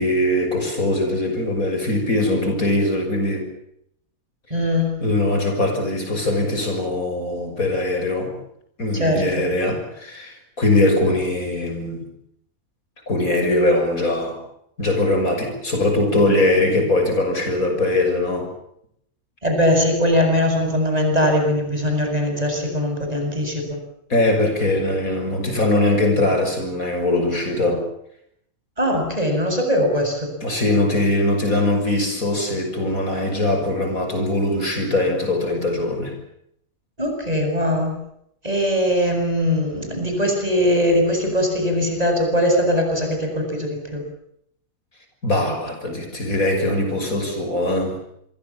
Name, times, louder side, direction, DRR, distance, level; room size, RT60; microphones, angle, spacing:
voice 1, 0.0-3.5 5.0-8.3 8.8-12.1 13.1-14.4 14.8-18.5 24.1-27.8 30.4-36.1 45.2-48.0, left 1 dB, 70° left, 5 dB, 6.7 m, -21 dB
voice 2, 4.5-5.0 8.9-9.4 19.4-23.8 28.8-30.3 37.0-38.0 38.4-44.0, equal, 25° right, 3 dB, 7.5 m, -21 dB
27.5 x 23.0 x 7.2 m, 0.73 s
omnidirectional pair, 1.5 m